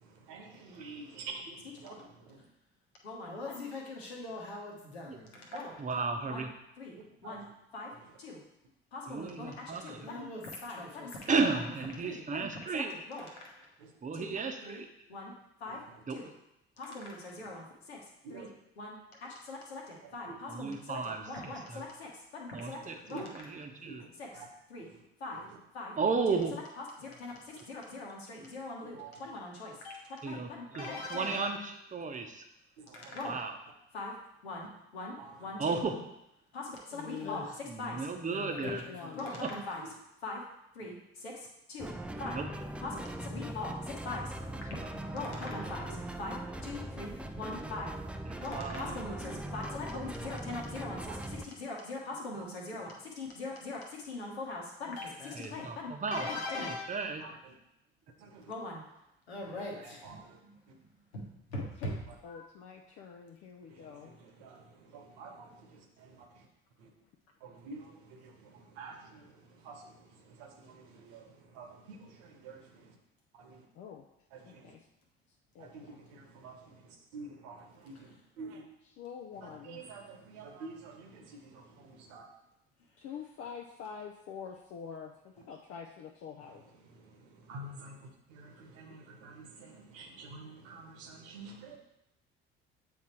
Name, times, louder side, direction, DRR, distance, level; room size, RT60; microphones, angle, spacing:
voice 1, 0.0-2.4 5.2-5.4 7.2-7.4 10.2-10.3 13.8-13.9 14.3-14.4 15.7-15.8 18.2-18.5 20.3-20.4 22.6-22.8 23.1-23.2 23.8-24.1 24.3-24.5 24.8-25.0 25.3-25.6 28.4-28.5 28.9-29.2 30.7-30.9 32.8-33.1 35.2-35.3 39.8-39.9 45.5-46.0 51.0-51.2 58.2-58.5 59.7-60.4 63.7-66.5 66.8-66.9 67.4-72.9 73.4-73.6 74.3-74.7 75.6-78.6 79.4-82.2 86.8-91.8, right 3 dB, 60° right, 2 dB, 1.2 m, -49 dB
voice 2, 3.0-5.8 6.3-6.5 6.8-7.0 7.2-7.4 7.7-7.9 8.2-8.4 8.9-11.4 12.0-13.7 14.1-14.3 14.6-14.8 15.1-15.3 15.6-15.8 16.1-16.3 16.8-18.0 18.3-23.3 24.2-24.4 24.7-24.9 25.2-25.4 25.7-25.9 26.3-31.6 32.9-33.4 33.9-34.1 34.4-35.8 36.5-37.5 37.8-38.8 39.0-39.8 40.2-40.4 40.7-41.9 42.2-42.4 42.8-44.2 45.1-45.9 46.2-46.4 46.6-47.9 48.4-51.1 51.6-56.9 58.5-58.8 59.3-60.6 61.1-62.0 62.3-62.4, left 2 dB, 75° left, -1 dB, 1.3 m, -41 dB
voice 3, 5.8-6.5 9.1-10.1 11.3-12.9 14.0-14.9 16.1-16.2 20.5-21.8 22.5-24.0 26.0-26.6 30.2-30.5 30.7-32.4 33.2-33.5 35.6-36.0 37.7-38.8 39.4-39.5 42.2-42.5 44.8-44.9 48.5-49.0 55.3-56.3 56.9-57.2, right 4 dB, 25° right, 4 dB, 0.9 m, -34 dB
voice 4, 37.2-37.6 38.6-39.3 61.5-62.0 62.2-64.1 73.7-74.1 74.5-74.8 75.5-76.0 78.8-79.9 83.0-85.1 85.5-86.6, left 7 dB, 45° left, 3 dB, 0.6 m, -45 dB
sound 1, 41.8-51.5, right 1 dB, 5° right, 0.4 m, -40 dB
8.3 x 3.5 x 4.4 m, 0.84 s
figure-of-eight pair, 50°, 32 cm